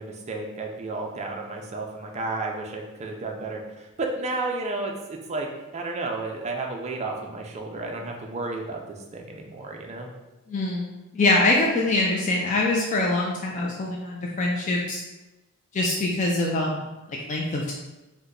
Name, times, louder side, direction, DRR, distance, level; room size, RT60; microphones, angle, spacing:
voice 1, 0.0-5.5 5.7-8.8 9.1-10.1, right 3 dB, 30° right, 1 dB, 0.4 m, -32 dB
voice 2, 10.5-15.0 15.7-16.9 17.3-17.7, left 2 dB, 35° left, -2 dB, 0.3 m, -24 dB
2.8 x 2.1 x 3.7 m, 1.0 s
head